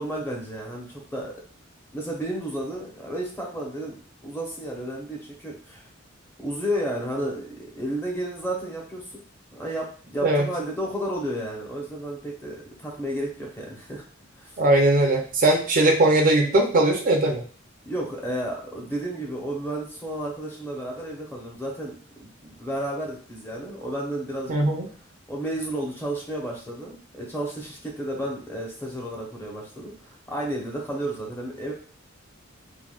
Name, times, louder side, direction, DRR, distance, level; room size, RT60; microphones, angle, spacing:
voice 1, 0.0-1.3 1.9-4.0 4.2-5.8 6.4-9.0 9.5-14.0 14.4-14.6 17.8-24.7 25.3-31.7, right 1 dB, 10° left, -2 dB, 0.8 m, -32 dB
voice 2, 14.6-17.4 24.5-24.9, right 2 dB, 40° right, 0 dB, 0.5 m, -20 dB
3.5 x 2.2 x 2.3 m, 0.41 s
head